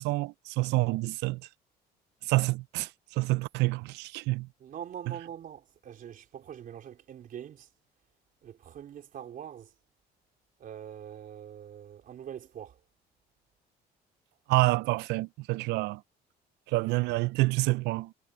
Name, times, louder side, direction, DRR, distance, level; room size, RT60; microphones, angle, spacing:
voice 1, 0.0-1.4 2.3-2.9 3.2-4.5 14.5-16.0 16.7-18.1, right 21 dB, 85° right, 0.4 m, -27 dB
voice 2, 4.6-7.7 8.4-9.7 10.6-12.8, right 9 dB, 55° right, 4.2 m, -43 dB
cardioid pair, 110°, 17 cm